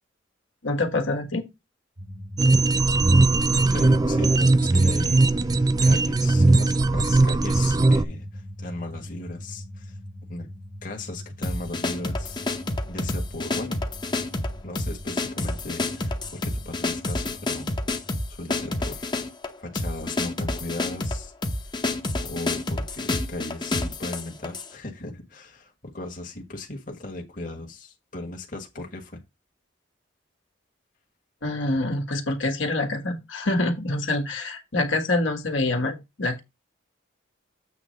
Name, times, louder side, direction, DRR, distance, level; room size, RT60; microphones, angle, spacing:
voice 1, 0.6-1.5 31.4-36.4, left 2 dB, 75° left, 1.7 m, -26 dB
sound 1, 2.0-18.1, equal, 80° right, 2.2 m, -41 dB
sound 2, 2.4-8.0, right 2 dB, 20° right, 0.3 m, -19 dB
voice 2, 3.7-10.0 10.3-10.5 10.8-12.4 12.9-13.8 14.6-19.3 19.6-21.3 21.6-21.7 22.2-29.2, left 2 dB, 40° left, 1.6 m, -37 dB
sound 3, 11.4-24.7, left 2 dB, 20° left, 0.9 m, -29 dB
8.2 x 3.2 x 6.4 m
head